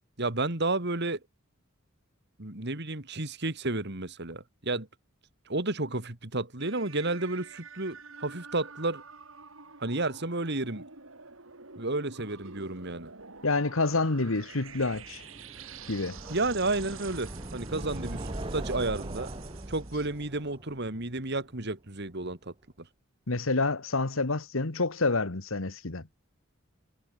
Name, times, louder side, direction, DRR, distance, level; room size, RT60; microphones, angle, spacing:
voice 1, 0.2-1.2 2.4-4.9 5.5-9.0 9.8-10.9 11.8-13.1 16.3-19.3 19.7-22.9, right 2 dB, 55° right, 3.0 m, -32 dB
sound 1, 6.6-20.3, right 5 dB, 85° right, 5.1 m, -48 dB
voice 2, 13.4-15.2 15.9-16.2 23.3-26.1, left 3 dB, 90° left, 1.7 m, -28 dB
sound 2, 14.7-21.7, right 1 dB, 25° right, 1.3 m, -41 dB
head